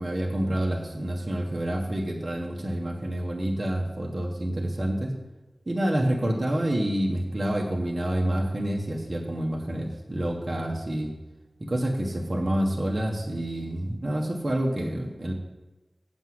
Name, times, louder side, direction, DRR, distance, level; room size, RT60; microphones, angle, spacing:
voice 1, 0.0-5.1 5.7-11.1 11.6-15.3, right 1 dB, 40° right, 0 dB, 1.4 m, -28 dB
7.9 x 6.2 x 7.8 m, 1.1 s
wide cardioid pair, 80°, 0 cm